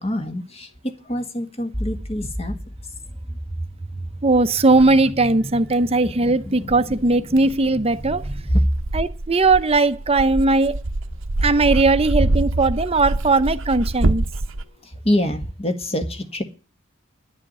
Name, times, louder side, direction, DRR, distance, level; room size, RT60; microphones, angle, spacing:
voice 1, 0.0-2.5 8.5-8.8 14.6-16.4, equal, 30° left, 1.7 m, -24 dB
sound 1, 1.7-8.6, equal, 10° left, 1.3 m, -34 dB
voice 2, 4.2-8.2 8.9-10.8 11.4-14.2, right 3 dB, 30° right, 0.8 m, -18 dB
Dog, 4.8-4.9 5.7-5.8 6.7-14.6, right 2 dB, 65° right, 0.9 m, -25 dB
11.0 x 7.4 x 9.3 m
head